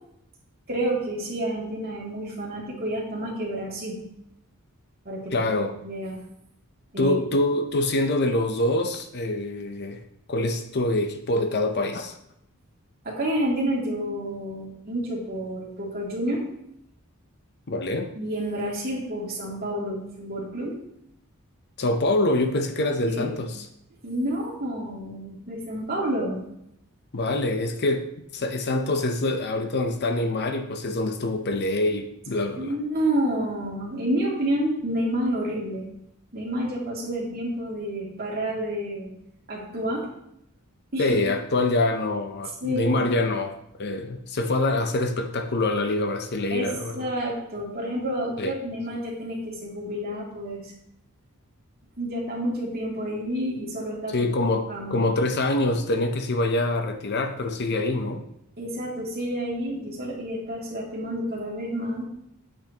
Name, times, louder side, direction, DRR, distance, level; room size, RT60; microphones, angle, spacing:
voice 1, 0.7-4.0 5.0-5.5 5.8-6.2 6.9-7.1 13.0-16.4 18.1-20.8 23.0-23.4 24.0-26.5 32.6-35.9 36.3-39.1 39.5-40.1 40.9-41.2 42.6-43.1 46.5-46.7 47.0-50.7 52.0-54.3 54.7-55.0 58.6-62.0, right 1 dB, 45° right, -4 dB, 2.7 m, -29 dB
voice 2, 5.3-5.7 7.0-10.0 10.3-12.2 17.7-18.1 21.8-23.7 27.1-32.7 41.0-47.0 48.4-48.5 54.1-58.2, left 2 dB, 50° left, 6 dB, 0.7 m, -25 dB
8.7 x 8.1 x 3.0 m, 0.78 s
head